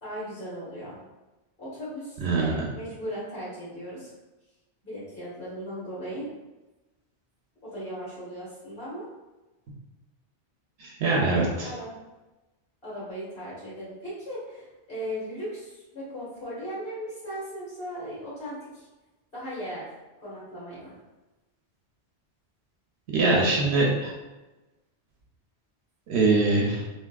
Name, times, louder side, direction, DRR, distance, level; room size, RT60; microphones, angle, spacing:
voice 1, 0.0-1.0 1.6-4.1 4.8-6.3 7.6-9.1 11.6-11.9 12.8-18.9 19.3-19.8 20.2-20.9, equal, 55° left, -9 dB, 1.6 m, -37 dB
voice 2, 2.2-2.7 10.8-11.7 23.1-24.1 26.1-26.8, right 3 dB, 75° right, -2 dB, 0.8 m, -23 dB
3.4 x 2.6 x 2.2 m, 1.1 s
omnidirectional pair, 1.1 m